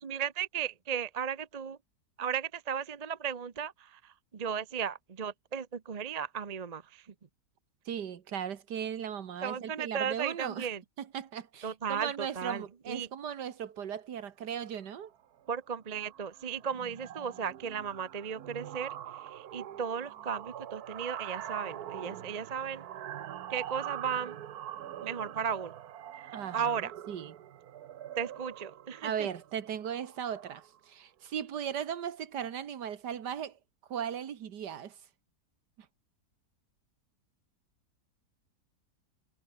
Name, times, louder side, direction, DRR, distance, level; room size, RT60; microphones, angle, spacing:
voice 1, 0.0-1.8 2.2-7.1 9.4-10.8 11.6-13.1 15.5-22.9 23.5-24.4 25.0-25.7 26.2-26.9 28.2-29.3, right 7 dB, 35° right, 0.6 m, -35 dB
voice 2, 7.9-10.7 11.1-15.1 26.3-26.8 27.1-27.4 29.0-33.6 33.9-35.0, right 8 dB, 85° right, 1.9 m, -37 dB
sound 1, 14.8-15.1 15.4-15.6 15.9-30.8, right 10 dB, 70° right, 1.4 m, -44 dB
omnidirectional pair, 1.7 m